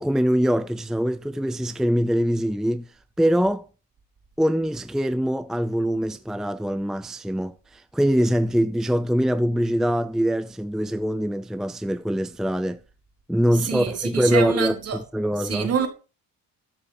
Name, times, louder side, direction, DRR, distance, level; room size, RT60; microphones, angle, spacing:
voice 1, 0.0-3.7 4.4-12.8 13.3-15.7, equal, ahead, 0.5 m, -23 dB
voice 2, 13.5-15.0 15.4-15.9, right 7 dB, 45° right, 3.9 m, -26 dB
13.0 x 6.2 x 7.6 m
cardioid pair, 135°, 33 cm